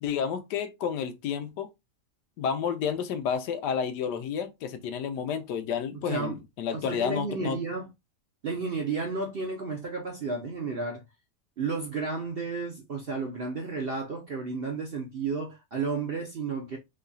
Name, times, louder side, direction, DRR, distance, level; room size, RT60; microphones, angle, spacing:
voice 1, 0.0-1.7 2.4-7.6, left 7 dB, 90° left, 1.2 m, -30 dB
voice 2, 6.0-6.3 6.7-7.9 8.4-11.0 11.6-16.8, right 4 dB, 60° right, 0.6 m, -32 dB
3.9 x 3.2 x 2.2 m
omnidirectional pair, 1.8 m